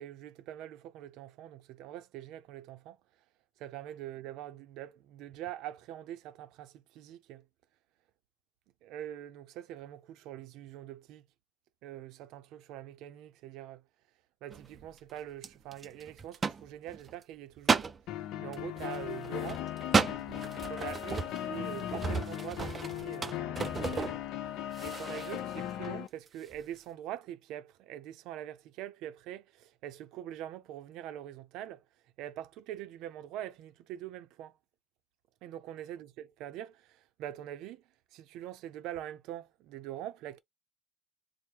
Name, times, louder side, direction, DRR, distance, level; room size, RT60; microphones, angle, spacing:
voice 1, 0.0-3.0 3.6-7.5 8.8-11.3 11.8-13.8 14.4-19.7 20.7-24.2 24.8-31.8 32.2-34.6 35.4-37.8 38.1-40.4, right 12 dB, 90° right, 0.5 m, -44 dB
sound 1, 14.5-14.9 15.4-17.1 17.6-18.0 18.5-24.5 24.7-25.4 25.8-25.9 26.3-26.6, right 5 dB, 25° right, 0.4 m, -34 dB
sound 2, 18.1-26.1, left 12 dB, 80° left, 0.5 m, -38 dB
4.6 x 2.1 x 3.3 m
cardioid pair, 165°, 0 cm